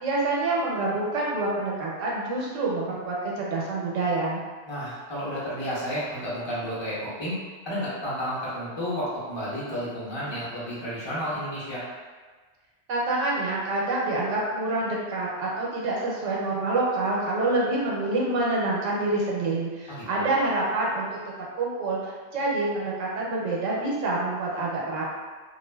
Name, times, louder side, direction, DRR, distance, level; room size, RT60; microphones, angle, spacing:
voice 1, 0.0-4.4 12.9-21.2 21.6-25.0, right 2 dB, 80° right, -4 dB, 1.0 m, -27 dB
voice 2, 4.7-7.4 7.6-11.8 19.9-20.3, equal, 30° left, -9 dB, 0.6 m, -31 dB
2.4 x 2.3 x 2.2 m, 1.4 s
omnidirectional pair, 1.3 m